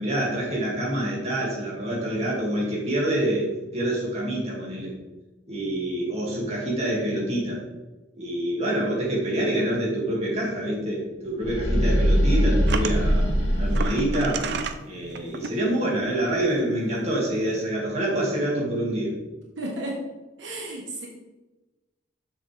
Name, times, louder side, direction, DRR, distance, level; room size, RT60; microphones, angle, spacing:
voice 1, 0.0-4.9 5.5-7.6 8.2-13.2 13.6-14.5 14.8-19.1, right 1 dB, 35° right, -5 dB, 2.4 m, -26 dB
sound 1, 11.4-14.7, equal, 85° left, 2.6 m, -22 dB
sound 2, 12.7-13.0 13.7-14.8 15.2-15.5 16.6-16.7 16.9-17.1, right 5 dB, 65° right, 0.5 m, -31 dB
voice 2, 19.6-20.0 20.4-21.1, right 1 dB, 80° right, -2 dB, 1.3 m, -33 dB
7.2 x 6.3 x 3.4 m, 1.1 s
head